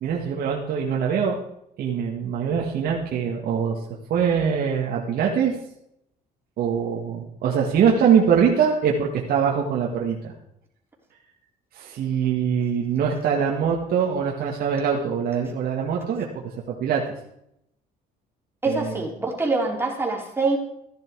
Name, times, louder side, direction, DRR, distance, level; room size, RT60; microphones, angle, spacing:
voice 1, 0.0-1.4 1.8-3.8 4.1-5.6 6.6-10.3 11.7-16.3 16.7-17.0 18.7-19.0, right 7 dB, 60° right, -1 dB, 2.0 m, -23 dB
voice 2, 18.6-20.6, right 3 dB, 15° right, -2 dB, 4.0 m, -24 dB
14.5 x 10.5 x 4.8 m, 0.77 s
cardioid pair, 110°, 17 cm